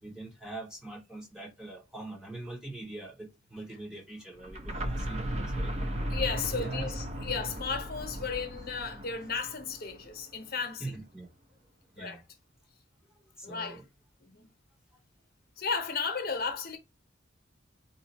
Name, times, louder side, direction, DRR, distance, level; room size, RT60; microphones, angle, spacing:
voice 1, 0.0-5.7 6.5-6.9 10.8-11.3 11.9-12.2 13.4-13.8, right 2 dB, 5° right, 0.8 m, -42 dB
sound 1, 4.4-10.2, right 1 dB, 35° right, 0.7 m, -36 dB
voice 2, 6.1-10.9 12.0-12.2 13.4-13.8 14.2-14.5 15.6-16.8, left 5 dB, 50° left, 0.9 m, -34 dB
4.0 x 2.4 x 4.1 m
head